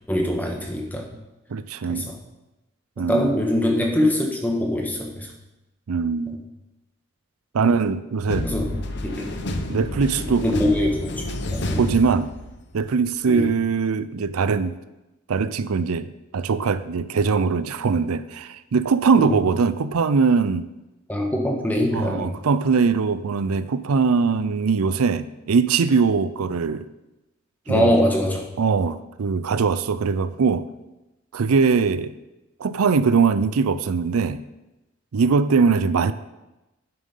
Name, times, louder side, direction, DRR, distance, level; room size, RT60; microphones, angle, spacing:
voice 1, 0.1-1.1 1.9-2.2 3.0-5.3 6.3-6.4 7.6-7.7 8.4-8.6 9.0-9.3 10.2-11.9 13.3-13.5 19.1-19.4 21.1-22.3 24.2-24.3 27.7-28.5, left 1 dB, 10° left, 1 dB, 1.5 m, -23 dB
voice 2, 1.5-2.1 3.0-3.3 5.9-6.4 7.5-8.5 9.7-10.5 11.8-12.3 12.7-14.8 15.3-20.7 21.9-26.9 27.7-28.0 28.6-30.6 31.3-32.1 32.6-34.4 35.1-36.1, right 5 dB, 85° right, 13 dB, 0.5 m, -21 dB
sound 1, 8.3-12.8, left 1 dB, 50° left, 0.9 m, -29 dB
9.9 x 7.4 x 5.5 m, 0.98 s
head